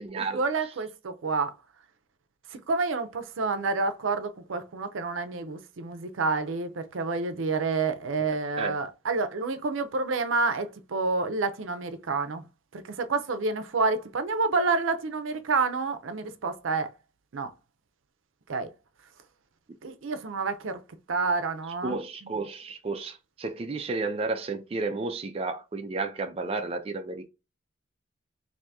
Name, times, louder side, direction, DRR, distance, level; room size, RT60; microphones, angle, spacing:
voice 1, 0.2-1.5 2.5-12.4 12.7-16.9 17.3-17.5 18.5-18.7 19.8-20.8 21.1-22.3, right 4 dB, 80° right, 0.5 m, -29 dB
voice 2, 21.8-27.3, right 3 dB, 30° right, 0.4 m, -32 dB
3.4 x 2.6 x 2.6 m
head